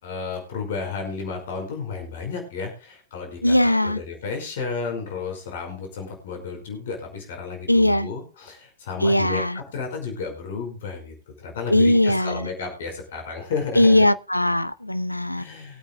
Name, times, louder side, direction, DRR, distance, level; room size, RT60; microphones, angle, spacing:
voice 1, 0.0-14.1 15.4-15.8, left 5 dB, 60° left, 5.1 m, -32 dB
voice 2, 3.4-4.0 7.7-8.1 9.0-9.6 11.7-12.5 13.8-15.4, left 1 dB, 85° left, 0.6 m, -19 dB
23.0 x 8.8 x 2.3 m
figure-of-eight pair, 90°, 0 cm